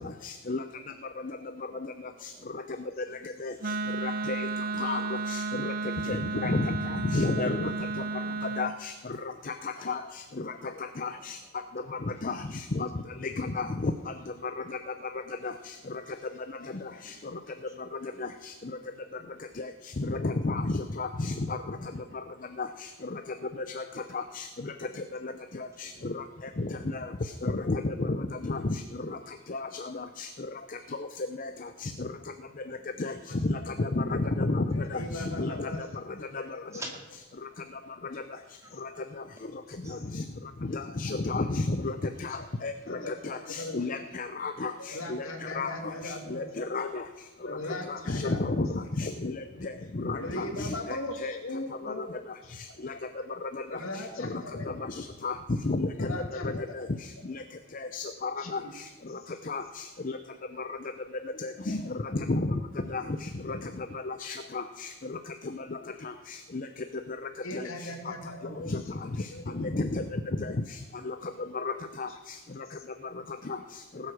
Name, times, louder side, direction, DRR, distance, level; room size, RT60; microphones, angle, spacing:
voice 1, 0.2-0.6 3.4-3.5 4.0-4.5 4.8-5.0 5.3-5.4 6.1-6.7 7.1-7.7 8.6-8.9 9.9-10.0 11.0-11.1 12.2-12.4 13.4-13.9 20.0-21.3 22.6-22.7 24.4-24.5 27.4-28.1 28.4-28.6 29.5-29.6 30.2-30.3 33.0-33.1 33.8-34.8 35.4-35.7 40.7-41.9 42.6-42.7 43.3-44.7 45.1-45.2 45.6-45.7 46.3-47.0 47.9-48.7 49.0-49.3 50.0-51.3 52.0-52.1 55.2-55.3 55.7-56.1 57.9-58.3 59.5-59.6 61.4-61.8 62.3-62.5 62.9-63.0 63.5-63.6 64.1-64.6 68.7-68.8 69.6-70.0 71.1-71.2 71.7-71.8 72.0-72.1, left 3 dB, 40° left, 8 dB, 0.6 m, -30 dB
voice 2, 1.7-2.6 3.4-3.8 4.3-4.4 5.6-5.7 9.3-9.5 10.6-11.2 12.2-12.3 14.8-15.4 17.0-17.4 18.0-18.2 18.8-18.9 19.2-19.4 21.2-21.3 24.8-25.0 25.3-25.4 25.8-26.1 28.8-29.1 29.7-29.9 31.8-31.9 32.8-33.0 36.7-36.9 39.8-40.0, right 2 dB, 15° right, 1 dB, 2.3 m, -50 dB
Wind instrument woodwind instrument, 3.6-8.8, right 3 dB, 45° right, 0.6 m, -33 dB
voice 3, 34.7-35.8 36.4-36.8 42.3-42.5 42.9-43.8 44.8-46.4 47.4-48.6 50.1-52.0 52.4-52.6 53.7-54.7 55.9-56.6 58.4-58.7 59.1-59.3 61.7-61.8 67.4-68.7 69.3-69.7, left 1 dB, 85° left, 3 dB, 2.4 m, -39 dB
18.5 x 8.1 x 6.3 m, 1.1 s
head